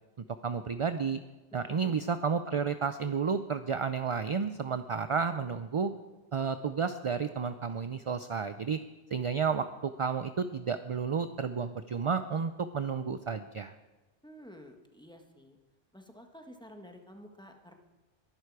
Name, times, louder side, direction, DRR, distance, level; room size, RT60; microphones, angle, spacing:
voice 1, 0.4-1.2 1.5-5.9 6.3-8.8 9.1-13.7, right 6 dB, 45° right, 10 dB, 0.4 m, -31 dB
voice 2, 1.5-2.1 14.2-15.6 15.9-17.8, equal, 5° left, 3 dB, 1.5 m, -51 dB
22.0 x 11.0 x 4.8 m, 1.2 s
omnidirectional pair, 1.1 m